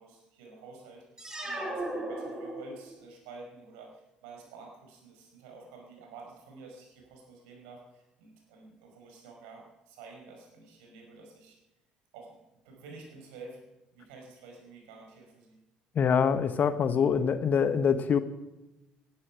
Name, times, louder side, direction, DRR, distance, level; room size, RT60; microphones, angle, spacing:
voice 1, 0.0-11.6 12.1-13.6 13.9-15.6, right 3 dB, 70° right, 1 dB, 5.4 m, -50 dB
sound 1, 1.2-3.0, right 1 dB, 15° right, 4.7 m, -36 dB
voice 2, 15.9-18.2, left 7 dB, 45° left, 12 dB, 1.2 m, -25 dB
19.0 x 12.0 x 6.2 m, 0.98 s
figure-of-eight pair, 55°, 4 cm